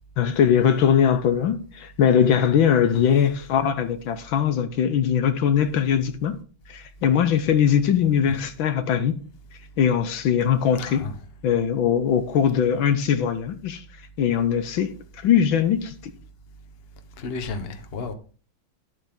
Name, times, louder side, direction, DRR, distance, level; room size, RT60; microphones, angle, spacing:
voice 1, 0.2-6.4 6.7-9.2 9.8-11.1 11.4-13.8 14.2-15.9, left 8 dB, 75° left, 1.6 m, -21 dB
voice 2, 10.7-11.1 17.2-18.1, left 4 dB, 35° left, 1.2 m, -32 dB
12.0 x 8.1 x 3.7 m
omnidirectional pair, 2.2 m